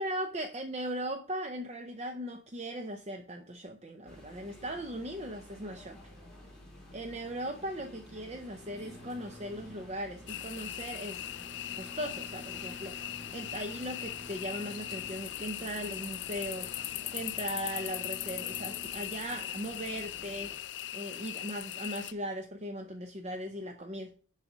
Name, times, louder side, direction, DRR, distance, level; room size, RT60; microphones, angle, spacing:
voice 1, 0.0-6.0 6.9-11.2 11.7-20.5 20.9-24.1, equal, 35° right, 5 dB, 0.6 m, -38 dB
sound 1, 4.1-20.6, left 1 dB, 5° left, 2.9 m, -50 dB
sound 2, 10.3-22.1, left 13 dB, 60° left, 0.4 m, -39 dB
11.0 x 4.2 x 5.0 m, 0.42 s
head